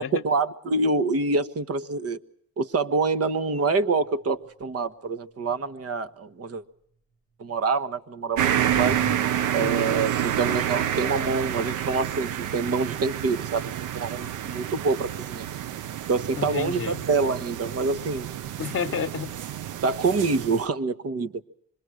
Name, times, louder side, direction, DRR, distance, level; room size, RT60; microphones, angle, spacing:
voice 1, 0.1-2.2 2.6-6.6 7.4-9.0 9.5-15.4 16.1-18.3 19.8-21.3, right 4 dB, 50° right, 13 dB, 1.4 m, -26 dB
sound 1, 4.0-4.3 8.7-9.2, equal, 65° right, 2.2 m, -36 dB
sound 2, 8.4-20.7, right 10 dB, 80° right, 0.9 m, -29 dB
voice 2, 9.5-10.0 16.4-17.0 18.6-19.3, left 7 dB, 45° left, 6 dB, 1.1 m, -31 dB
25.5 x 21.5 x 6.5 m, 0.68 s
cardioid pair, 90°, 30 cm